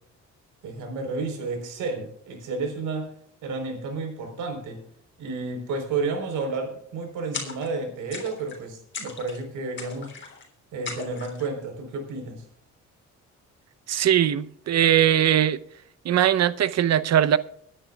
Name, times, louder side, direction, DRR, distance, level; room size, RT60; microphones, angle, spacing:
voice 1, 0.6-3.1 3.4-4.8 5.2-10.1 10.7-12.5, right 3 dB, 90° right, 4.2 m, -31 dB
sound 1, 7.3-7.8 8.1-8.6 8.9-9.4 9.8-10.4 10.9-11.5, left 4 dB, 40° left, 3.3 m, -37 dB
voice 2, 13.9-15.6 16.0-17.4, right 10 dB, 60° right, 0.8 m, -20 dB
24.0 x 10.0 x 2.4 m
cardioid pair, 90°, 30 cm